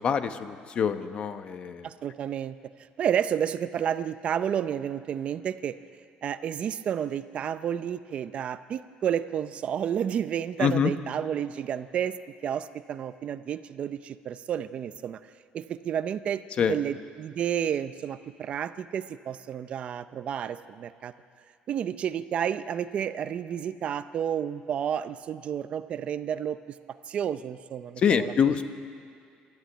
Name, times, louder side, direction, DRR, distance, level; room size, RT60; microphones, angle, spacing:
voice 1, 0.0-1.9 10.6-10.9 16.6-16.8 28.0-28.7, left 7 dB, 35° left, 10 dB, 0.9 m, -25 dB
voice 2, 1.8-2.6 3.0-5.8 6.2-15.2 15.5-16.4 16.7-21.1 21.7-26.8 27.1-28.3, right 9 dB, 40° right, 12 dB, 0.6 m, -31 dB
26.5 x 13.0 x 9.1 m, 2.3 s
cardioid pair, 165°, 3 cm